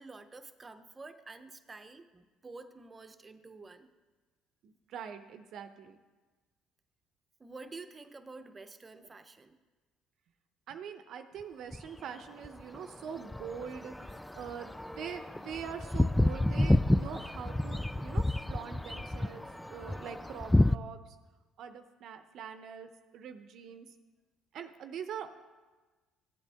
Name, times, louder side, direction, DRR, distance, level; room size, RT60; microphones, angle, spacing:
voice 1, 0.0-3.9 7.4-9.6, right 3 dB, 25° right, 9 dB, 0.8 m, -49 dB
voice 2, 4.6-6.0 10.7-21.2 21.6-23.9 24.5-25.3, right 7 dB, 65° right, 9 dB, 0.7 m, -44 dB
sound 1, 11.7-12.0 12.4-20.8, left 1 dB, 5° left, 0.3 m, -30 dB
15.0 x 8.2 x 3.5 m, 1.3 s
supercardioid pair, 80°, 0 cm